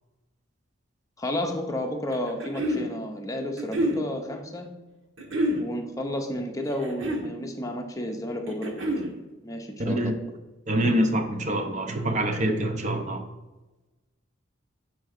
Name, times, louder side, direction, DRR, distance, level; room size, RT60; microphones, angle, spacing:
voice 1, 1.2-4.7 5.6-8.9 9.4-10.1, left 1 dB, 15° left, 3 dB, 0.7 m, -32 dB
sound 1, 2.1-2.9 3.6-4.0 5.2-5.6 6.7-7.3 8.5-9.1, equal, 80° right, 1.3 m, -27 dB
voice 2, 9.8-10.1 10.7-13.2, right 1 dB, 40° right, 5 dB, 0.7 m, -25 dB
5.9 x 4.6 x 6.5 m, 1.1 s
head